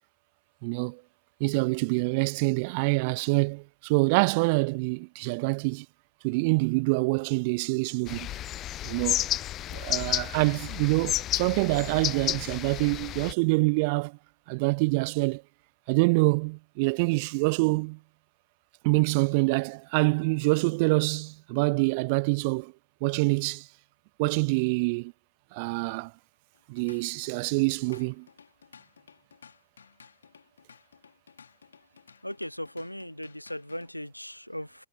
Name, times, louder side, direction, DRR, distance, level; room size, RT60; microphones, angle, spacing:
voice 1, 0.6-1.0 1.4-5.9 6.2-8.3 8.8-9.3 9.7-14.2 14.5-15.4 15.9-18.0 18.8-22.7 23.0-23.7 24.2-25.1 25.5-26.1 26.7-28.3, right 29 dB, 45° right, 0.4 m, -26 dB
sound 1, 8.1-13.3, left 13 dB, 30° left, 0.7 m, -31 dB
Drum kit / Drum, 26.5-33.9, left 6 dB, 70° left, 2.7 m, -55 dB
voice 2, 32.2-34.9, left 1 dB, 90° left, 0.5 m, -38 dB
figure-of-eight pair, 90°, 0 cm